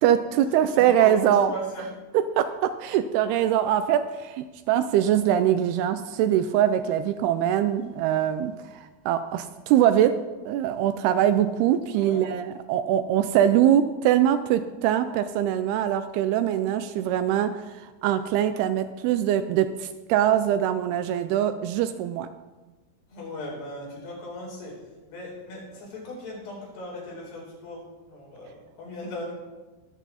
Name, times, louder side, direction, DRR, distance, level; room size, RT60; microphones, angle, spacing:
voice 1, 0.0-1.5 2.1-10.2 10.5-22.3, right 10 dB, 80° right, 11 dB, 2.4 m, -23 dB
voice 2, 0.7-1.9 11.9-12.2 23.1-29.3, equal, 70° left, -4 dB, 6.3 m, -38 dB
22.0 x 8.1 x 4.2 m, 1.2 s
omnidirectional pair, 4.8 m